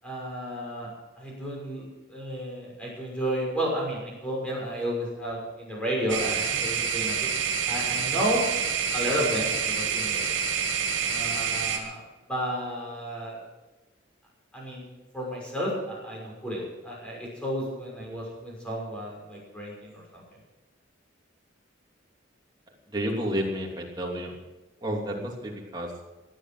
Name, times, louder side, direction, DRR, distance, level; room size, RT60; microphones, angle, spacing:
voice 1, 0.0-7.3 7.7-8.5 8.9-10.3 11.0-12.0 12.3-13.4 14.5-14.8 15.1-20.2, equal, 5° left, -4 dB, 6.2 m, -32 dB
sound 1, 6.1-11.8, right 6 dB, 75° right, 2.8 m, -27 dB
voice 2, 22.9-24.3 24.8-25.9, equal, 20° right, -2 dB, 3.1 m, -30 dB
17.5 x 12.0 x 6.3 m, 1.1 s
head